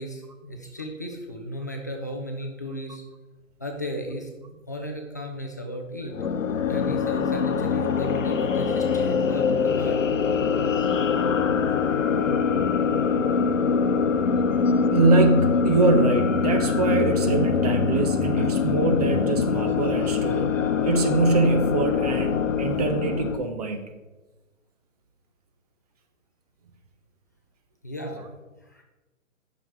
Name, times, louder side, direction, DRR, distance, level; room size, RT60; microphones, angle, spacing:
voice 1, 0.0-3.0 3.6-4.3 4.7-6.1 6.7-10.0 27.8-28.2 28.6-28.8, equal, 15° left, 2 dB, 0.4 m, -35 dB
sound 1, 6.1-23.4, left 6 dB, 70° left, 0.8 m, -23 dB
voice 2, 14.9-20.5 20.8-23.8, right 3 dB, 30° right, 6 dB, 0.8 m, -23 dB
8.9 x 6.1 x 4.6 m, 1.1 s
figure-of-eight pair, 140°, 40 cm